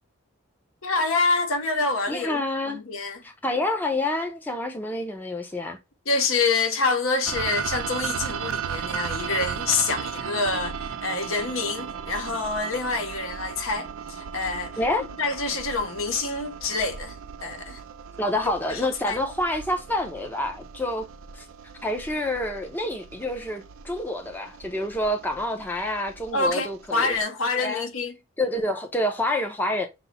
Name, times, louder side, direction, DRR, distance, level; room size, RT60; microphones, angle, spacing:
voice 1, 0.8-2.4 2.7-3.2 6.1-14.8 15.2-17.2 17.4-17.8 18.7-19.2 26.3-28.1, left 3 dB, 75° left, 0.8 m, -26 dB
voice 2, 2.1-2.8 3.2-5.8 14.8-15.0 18.2-21.1 21.3-21.5 21.8-27.2 27.6-27.9 28.4-29.9, left 1 dB, 10° left, 0.5 m, -28 dB
sound 1, 7.3-27.2, right 7 dB, 75° right, 0.4 m, -36 dB
5.7 x 2.0 x 4.0 m
head